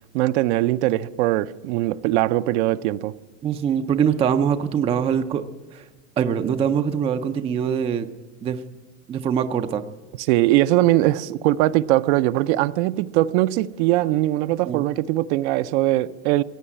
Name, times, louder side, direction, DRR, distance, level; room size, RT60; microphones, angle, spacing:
voice 1, 0.1-3.1 10.3-16.4, right 16 dB, 60° right, 0.6 m, -21 dB
voice 2, 3.4-5.4 5.7-5.8 6.2-8.1 8.4-8.6 9.1-9.8 14.6-14.8, right 8 dB, 15° right, 0.4 m, -23 dB
16.0 x 8.8 x 9.6 m
supercardioid pair, 145°, 39 cm